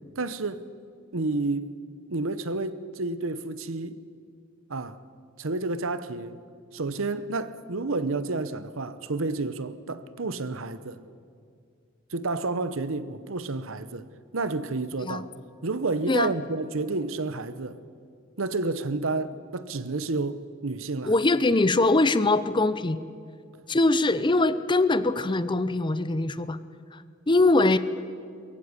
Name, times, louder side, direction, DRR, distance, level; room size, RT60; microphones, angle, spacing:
voice 1, 0.2-0.6 1.1-1.8 2.1-4.0 4.7-5.0 5.4-6.4 6.7-11.0 12.1-14.1 14.3-15.3 15.6-17.8 18.4-21.1, right 3 dB, 70° right, 1.0 m, -30 dB
voice 2, 21.0-23.0 23.7-26.6 26.9-27.8, left 2 dB, 25° left, 0.6 m, -22 dB
22.5 x 15.5 x 9.8 m
head